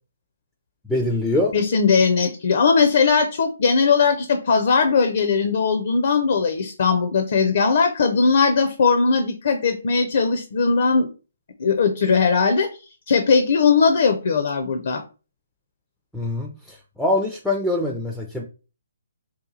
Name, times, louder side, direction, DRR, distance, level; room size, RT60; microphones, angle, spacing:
voice 1, 0.9-1.5 16.1-18.4, left 2 dB, ahead, 0 dB, 0.4 m, -24 dB
voice 2, 1.5-11.1 11.6-12.7 13.1-15.0, left 5 dB, 55° left, 6 dB, 0.5 m, -19 dB
2.9 x 2.3 x 3.9 m, 0.34 s
figure-of-eight pair, 135°, 0 cm